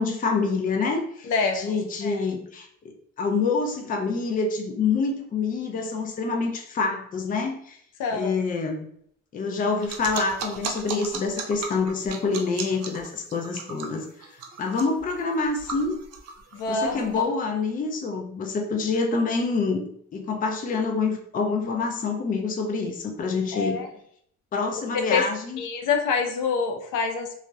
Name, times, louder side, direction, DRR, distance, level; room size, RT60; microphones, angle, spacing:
voice 1, 0.0-7.8 8.1-8.9 9.3-14.3 14.6-16.0 16.7-23.8 24.5-25.7, left 4 dB, 30° left, 3 dB, 0.4 m, -27 dB
voice 2, 1.2-1.8 8.0-8.4 16.5-17.0 23.5-23.9 24.9-25.3 25.6-27.4, left 5 dB, 80° left, 4 dB, 0.5 m, -26 dB
sound 1, 9.8-17.2, right 5 dB, 55° right, 0.4 m, -36 dB
2.6 x 2.0 x 2.3 m, 0.66 s
cardioid pair, 90°, 30 cm